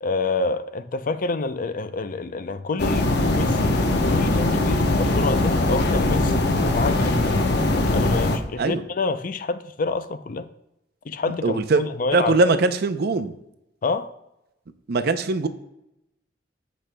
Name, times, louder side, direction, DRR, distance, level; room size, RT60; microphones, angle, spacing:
voice 1, 0.0-7.4 7.9-10.5 11.1-12.5 13.8-14.1, left 3 dB, 50° left, 0.5 m, -28 dB
sound 1, 2.8-8.4, left 2 dB, 65° left, 0.9 m, -21 dB
voice 2, 11.4-11.8 12.1-13.3 14.9-15.5, right 3 dB, 60° right, 0.5 m, -21 dB
14.5 x 5.2 x 2.2 m
head